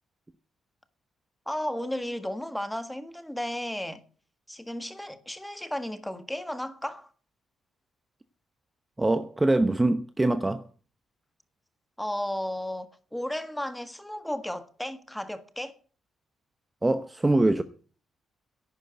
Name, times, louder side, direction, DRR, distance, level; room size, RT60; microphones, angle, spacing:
voice 1, 1.5-4.0 4.5-7.1 12.0-15.8, left 1 dB, 5° left, 1.6 m, -34 dB
voice 2, 9.0-10.6 16.8-17.6, right 2 dB, 15° right, 0.8 m, -23 dB
11.0 x 9.1 x 7.9 m
cardioid pair, 100°, 0 cm